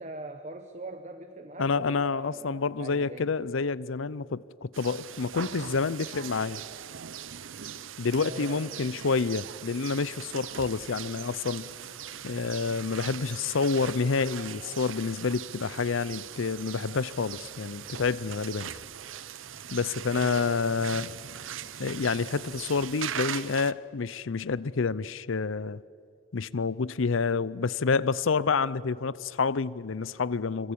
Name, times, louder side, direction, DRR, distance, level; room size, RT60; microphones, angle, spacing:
voice 1, 0.0-3.4 8.2-8.7 20.1-20.8, right 2 dB, 35° right, 1.0 m, -42 dB
voice 2, 1.6-6.6 8.0-11.7 12.2-18.7 19.7-21.1 21.8-25.8 26.3-30.7, left 4 dB, 85° left, 0.6 m, -28 dB
sound 1, 4.7-23.7, right 9 dB, 85° right, 0.7 m, -40 dB
26.0 x 25.5 x 8.6 m
head